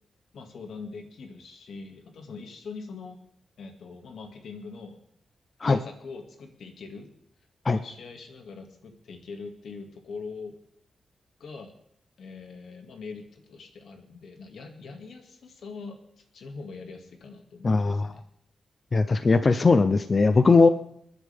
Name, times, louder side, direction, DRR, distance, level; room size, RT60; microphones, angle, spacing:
voice 1, 0.3-3.2 3.6-5.0 5.6-7.1 7.7-10.6 11.4-11.8 12.2-18.2, left 4 dB, 85° left, 4 dB, 2.2 m, -42 dB
voice 2, 17.6-18.1 18.9-20.7, left 4 dB, 35° left, 10 dB, 0.6 m, -20 dB
30.0 x 10.0 x 3.6 m, 0.71 s
wide cardioid pair, 140°, 0 cm